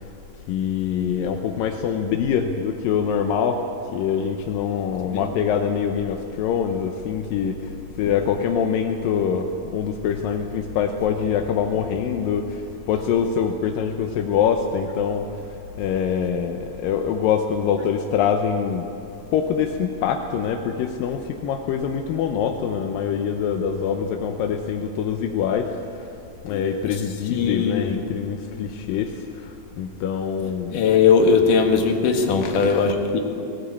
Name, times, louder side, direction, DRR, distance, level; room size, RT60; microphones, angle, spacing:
voice 1, 0.5-3.6 3.9-7.6 8.0-12.6 12.9-15.3 15.8-18.9 19.3-25.7 26.4-29.5 29.8-30.7 32.4-32.9, left 7 dB, 75° left, 4 dB, 2.2 m, -24 dB
voice 2, 27.3-27.9 30.7-33.2, left 5 dB, 60° left, 3 dB, 2.9 m, -19 dB
19.0 x 19.0 x 8.5 m, 2.6 s
omnidirectional pair, 4.8 m